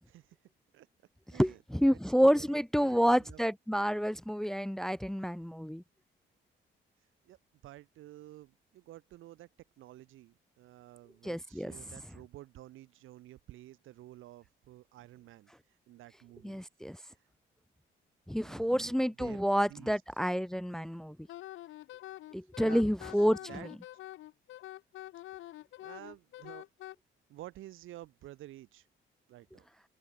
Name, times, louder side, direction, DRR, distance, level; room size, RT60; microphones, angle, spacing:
voice 1, 0.1-0.4 0.7-0.9 1.3-3.4 7.2-7.4 7.6-9.5 9.8-15.5 15.9-16.6 18.4-19.4 19.7-20.0 22.6-22.9 23.5-23.7 25.4-25.5 25.8-26.7 27.3-28.9 29.3-29.7, right 15 dB, 85° right, 3.8 m, -51 dB
voice 2, 1.4-5.8 11.2-11.7 16.4-17.0 18.3-21.2 22.3-23.4, equal, ahead, 0.8 m, -29 dB
Wind instrument woodwind instrument, 21.3-27.0, left 15 dB, 85° left, 1.3 m, -46 dB
cardioid pair, 90°, 20 cm